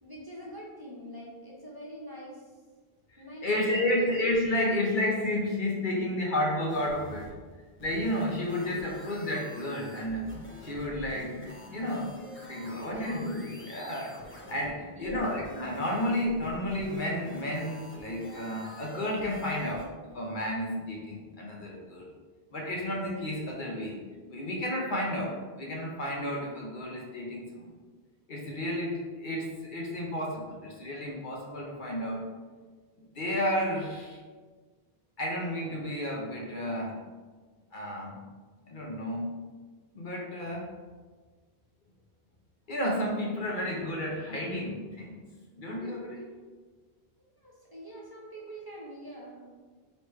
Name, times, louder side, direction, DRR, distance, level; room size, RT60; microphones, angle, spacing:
voice 1, 0.0-2.4 3.2-4.0 12.7-13.2 15.0-15.3 36.8-36.9 47.4-49.7, equal, 25° right, -6 dB, 0.8 m, -44 dB
voice 2, 3.1-7.3 7.8-10.3 10.6-12.1 12.5-19.9 20.1-22.0 22.5-24.0 24.3-27.7 28.3-32.2 33.1-34.2 35.2-37.0 37.7-38.2 38.6-39.4 39.9-40.7 42.7-45.2 45.6-46.3, left 1 dB, 55° left, -3 dB, 0.9 m, -32 dB
sound 1, 6.7-19.9, left 1 dB, 15° left, 0.5 m, -47 dB
4.7 x 3.1 x 3.2 m, 1.4 s
omnidirectional pair, 1.0 m